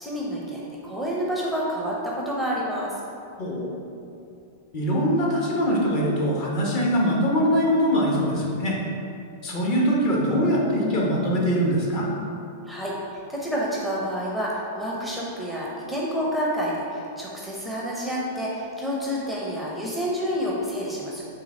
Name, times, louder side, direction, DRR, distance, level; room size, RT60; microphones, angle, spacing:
voice 1, 0.0-3.0 12.7-21.2, equal, ahead, -5 dB, 0.6 m, -29 dB
voice 2, 3.4-3.7 4.7-8.8 9.4-12.1, equal, 45° left, -3 dB, 1.0 m, -22 dB
3.8 x 2.8 x 4.2 m, 2.7 s
hypercardioid pair, 125°, 0 cm